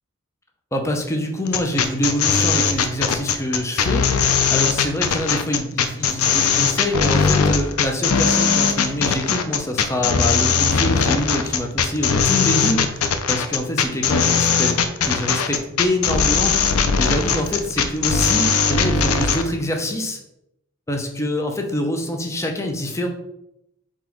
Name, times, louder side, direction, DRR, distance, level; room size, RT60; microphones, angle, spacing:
voice 1, 0.7-20.2 20.9-23.1, equal, 15° left, 3 dB, 0.5 m, -25 dB
sound 1, 1.5-19.4, left 6 dB, 80° left, 0.5 m, -19 dB
3.9 x 3.0 x 4.4 m, 0.81 s
head